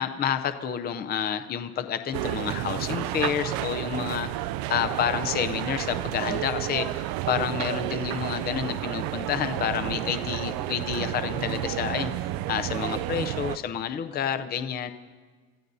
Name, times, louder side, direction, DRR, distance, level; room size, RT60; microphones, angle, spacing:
voice 1, 0.0-4.3 4.7-12.1 12.5-14.9, left 8 dB, 25° left, 9 dB, 0.5 m, -29 dB
sound 1, 2.1-13.6, right 14 dB, 70° right, 0.5 m, -31 dB
29.0 x 14.0 x 2.7 m, 1.5 s
cardioid pair, 150°, 37 cm